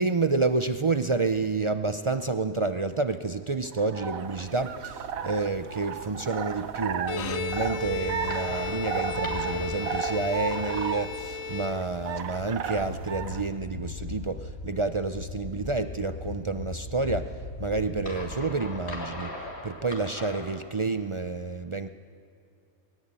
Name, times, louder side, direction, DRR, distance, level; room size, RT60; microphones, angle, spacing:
voice 1, 0.0-17.3 17.6-19.3 19.6-21.9, right 3 dB, 50° right, 9 dB, 0.3 m, -29 dB
sound 1, 3.7-13.5, right 7 dB, 75° right, 1.3 m, -35 dB
Bowed string instrument, 7.0-12.3, left 6 dB, 70° left, 1.3 m, -35 dB
sound 2, 7.2-20.6, left 3 dB, 45° left, 3.3 m, -39 dB
21.5 x 17.5 x 9.0 m, 2.6 s
omnidirectional pair, 1.5 m